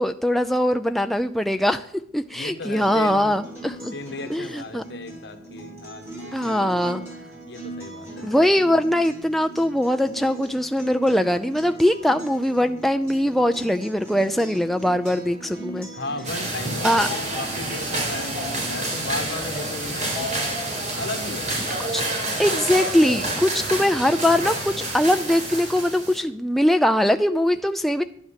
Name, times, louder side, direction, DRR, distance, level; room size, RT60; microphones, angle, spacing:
voice 1, 0.0-1.8 2.1-3.9 4.3-4.8 6.3-7.0 8.2-15.9 16.8-17.1 21.9-22.0 22.4-28.0, left 1 dB, ahead, 7 dB, 0.5 m, -21 dB
voice 2, 2.3-3.3 3.9-7.0 7.5-8.4 15.9-20.3 21.0-21.5, left 2 dB, 65° left, 7 dB, 1.8 m, -35 dB
Acoustic guitar, 2.8-18.8, right 2 dB, 15° right, 6.5 m, -40 dB
sound 1, 16.2-26.2, right 1 dB, 40° right, 4.3 m, -28 dB
12.5 x 10.0 x 7.5 m, 0.62 s
head